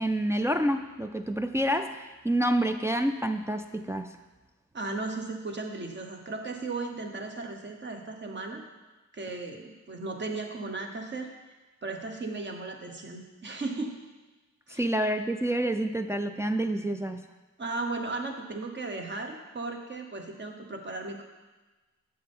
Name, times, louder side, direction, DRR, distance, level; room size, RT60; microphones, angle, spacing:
voice 1, 0.0-4.1 14.7-17.2, right 1 dB, 10° right, 5 dB, 0.4 m, -28 dB
voice 2, 4.7-8.6 9.1-11.3 11.8-14.0 14.7-14.9 17.6-21.2, right 3 dB, 35° right, 3 dB, 1.2 m, -36 dB
8.6 x 6.7 x 3.6 m, 1.2 s
cardioid pair, 85°, 31 cm